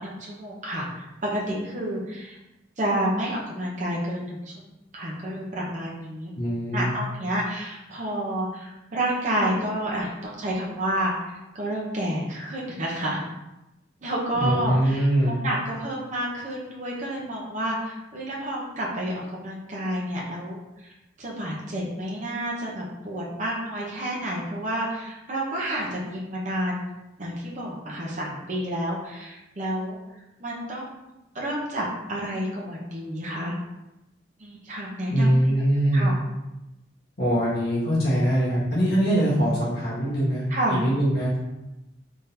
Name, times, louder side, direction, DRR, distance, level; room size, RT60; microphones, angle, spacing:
voice 1, 0.0-2.4 2.8-4.7 4.9-6.3 6.7-13.2 14.0-15.1 15.4-26.8 27.2-30.0 30.4-30.9 31.3-33.5 34.4-35.5 35.9-36.1 40.5-40.8, right 1 dB, 40° right, -4 dB, 0.8 m, -30 dB
voice 2, 6.3-6.9 14.4-15.3 35.1-36.1 37.2-41.4, equal, 55° left, -8 dB, 1.3 m, -22 dB
3.7 x 3.5 x 2.8 m, 0.96 s
head